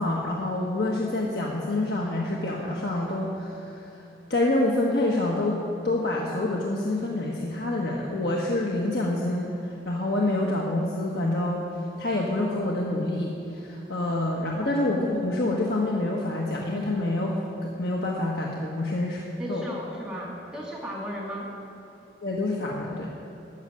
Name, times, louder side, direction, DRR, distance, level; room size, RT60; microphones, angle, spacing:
voice 1, 0.0-4.0 4.3-11.6 12.0-17.4 17.8-19.6 22.2-23.1, left 2 dB, 70° left, -3 dB, 1.5 m, -27 dB
voice 2, 19.4-21.5, equal, 5° right, -5 dB, 2.1 m, -35 dB
14.0 x 8.3 x 9.9 m, 3.0 s
head